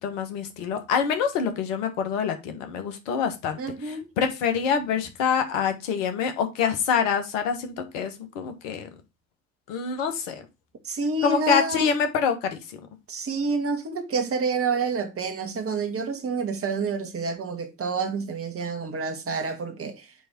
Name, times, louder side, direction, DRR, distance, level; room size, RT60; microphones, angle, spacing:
voice 1, 0.0-8.9 9.7-10.4 11.2-12.8, left 7 dB, 65° left, 1.4 m, -26 dB
voice 2, 3.6-4.1 10.8-11.9 13.1-20.1, right 4 dB, 35° right, 1.8 m, -28 dB
8.4 x 3.4 x 4.4 m
figure-of-eight pair, 60°, 40 cm